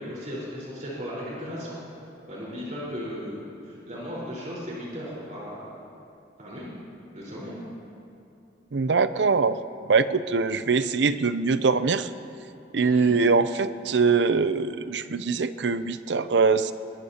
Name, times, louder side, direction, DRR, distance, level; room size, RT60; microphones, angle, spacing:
voice 1, 0.0-1.8 2.3-5.6 6.4-6.7 7.1-7.5 12.8-13.1, equal, 45° right, -7 dB, 4.5 m, -36 dB
voice 2, 8.7-9.6 9.9-12.1 12.7-16.7, right 4 dB, 75° right, 13 dB, 0.6 m, -23 dB
21.5 x 20.0 x 2.9 m, 2.7 s
head